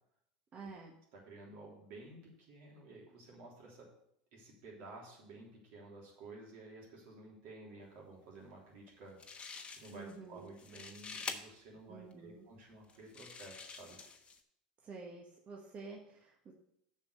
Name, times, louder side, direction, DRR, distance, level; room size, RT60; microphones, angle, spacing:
voice 1, 0.5-0.9 9.9-10.5 11.9-12.4 14.8-16.5, right 4 dB, 35° right, -1 dB, 1.3 m, -49 dB
voice 2, 1.1-3.9 4.3-9.5 9.7-14.0, right 2 dB, 60° right, -3 dB, 3.4 m, -53 dB
sound 1, 8.9-9.0 9.2-10.1 10.5-11.4 12.1-12.2 12.9-14.4, left 5 dB, 25° left, 1.1 m, -46 dB
7.1 x 5.7 x 6.5 m, 0.76 s
hypercardioid pair, 90°, 4 cm